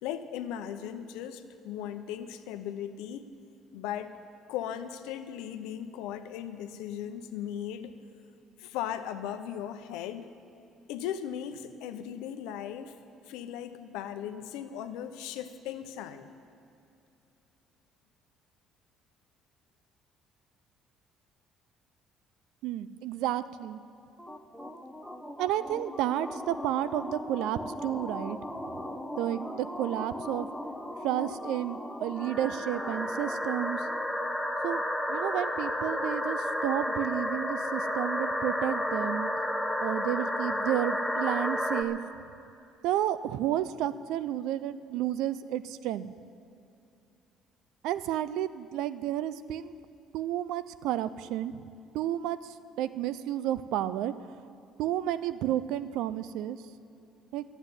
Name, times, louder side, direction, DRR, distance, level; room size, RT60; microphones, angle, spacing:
voice 1, 0.0-3.3 3.7-4.1 4.5-7.9 8.6-10.3 10.9-12.9 13.3-16.3, left 10 dB, 90° left, 9 dB, 0.7 m, -37 dB
voice 2, 22.6-23.8 25.4-28.4 28.6-28.7 29.2-30.5 31.0-33.9 34.6-34.8 35.1-39.3 39.8-42.0 42.8-46.1 47.8-49.8 50.1-51.6 51.9-54.1 54.8-56.6 57.3-57.4, right 12 dB, 80° right, 14 dB, 0.5 m, -31 dB
sound 1, 24.2-41.8, left 1 dB, ahead, 1.0 m, -33 dB
12.0 x 8.1 x 9.6 m, 2.6 s
cardioid pair, 95°, 0 cm